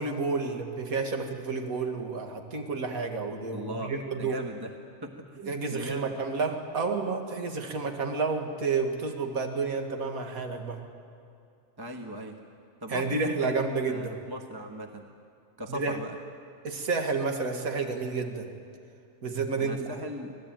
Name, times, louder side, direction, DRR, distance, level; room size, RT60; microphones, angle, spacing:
voice 1, 0.0-4.4 5.4-10.8 12.9-14.2 15.7-16.0 16.6-18.5 19.2-19.9, right 4 dB, 65° right, 4 dB, 2.3 m, -30 dB
voice 2, 3.5-3.9 4.2-4.7 5.0-5.1 5.4-6.1 11.8-12.4 12.8-13.6 13.9-15.0 15.6-16.2 19.6-20.4, equal, 15° right, 4 dB, 1.3 m, -38 dB
25.5 x 19.0 x 9.0 m, 2.4 s
omnidirectional pair, 1.6 m